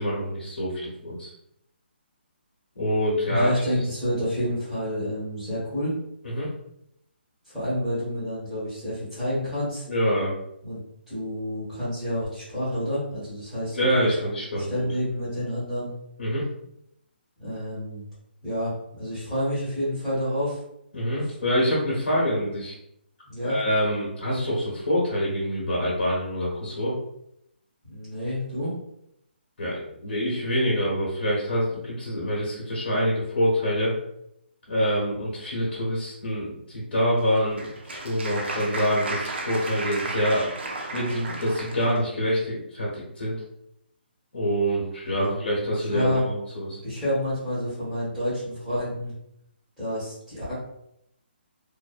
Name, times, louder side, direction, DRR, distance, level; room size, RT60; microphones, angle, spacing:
voice 1, 0.0-1.3 2.7-3.5 6.2-6.5 9.9-10.3 13.7-14.8 16.2-16.5 20.9-22.7 23.4-26.9 29.6-34.0 34.7-37.6 37.9-40.5 40.9-43.4 44.3-46.8, equal, 70° left, -6 dB, 1.0 m, -26 dB
voice 2, 3.3-6.0 7.5-9.8 10.6-14.1 14.5-15.9 17.4-18.0 18.4-20.6 23.3-23.6 27.9-28.7 45.1-46.2 46.8-49.1 49.8-50.5, equal, 5° right, -13 dB, 1.1 m, -29 dB
Applause, 37.2-42.0, right 2 dB, 70° right, 0.5 m, -33 dB
2.6 x 2.0 x 2.4 m, 0.77 s
hypercardioid pair, 165°, 6 cm